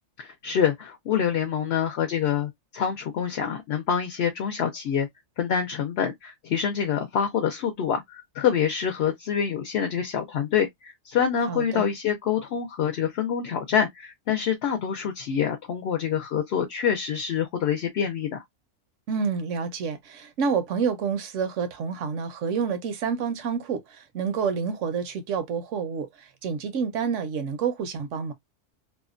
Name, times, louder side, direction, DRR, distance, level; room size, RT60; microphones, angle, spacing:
voice 1, 0.2-5.1 5.4-18.4, left 8 dB, 65° left, 0.7 m, -26 dB
voice 2, 11.4-11.9 19.1-28.3, right 6 dB, 70° right, 0.9 m, -28 dB
2.7 x 2.1 x 2.4 m
omnidirectional pair, 1.3 m